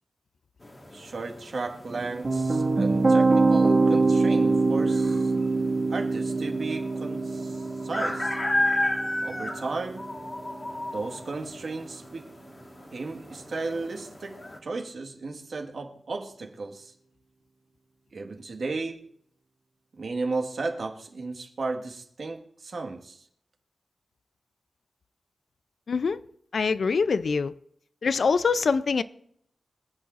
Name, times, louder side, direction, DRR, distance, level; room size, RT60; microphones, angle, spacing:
sound 1, 0.6-14.6, left 1 dB, 25° left, 1.6 m, -35 dB
voice 1, 0.9-5.3 5.9-8.4 9.2-10.1 10.9-12.3 12.9-16.9 18.1-19.1 20.0-23.2, right 3 dB, 60° right, 1.5 m, -34 dB
sound 2, 1.9-11.0, right 3 dB, 40° right, 1.8 m, -24 dB
voice 2, 25.9-26.2 26.5-27.5 28.0-29.0, left 5 dB, 65° left, 0.4 m, -24 dB
25.0 x 8.5 x 2.5 m
wide cardioid pair, 135°, 0 cm